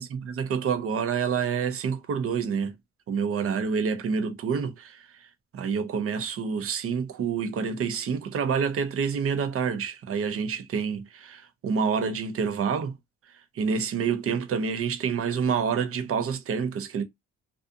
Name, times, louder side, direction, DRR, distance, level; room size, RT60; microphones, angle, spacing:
voice 1, 0.0-2.7 3.1-5.1 5.5-12.9 13.5-17.0, right 6 dB, 50° right, 0.6 m, -28 dB
2.5 x 2.4 x 2.5 m
cardioid pair, 90°, 30 cm